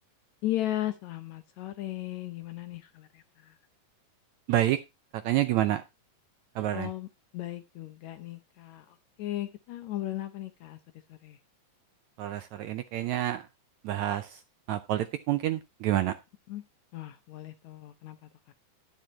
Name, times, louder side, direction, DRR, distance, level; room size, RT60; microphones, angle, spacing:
voice 1, 0.4-3.1 6.7-7.1 7.3-8.8 9.2-10.8 11.2-11.4 16.5-16.6 16.9-18.2, left 14 dB, 75° left, 9 dB, 1.8 m, -35 dB
voice 2, 4.5-4.8 5.2-5.8 6.5-6.9 12.2-13.5 13.8-14.4 14.7-16.2, right 13 dB, 80° right, 10 dB, 1.7 m, -28 dB
11.0 x 10.5 x 2.9 m, 0.23 s
omnidirectional pair, 3.9 m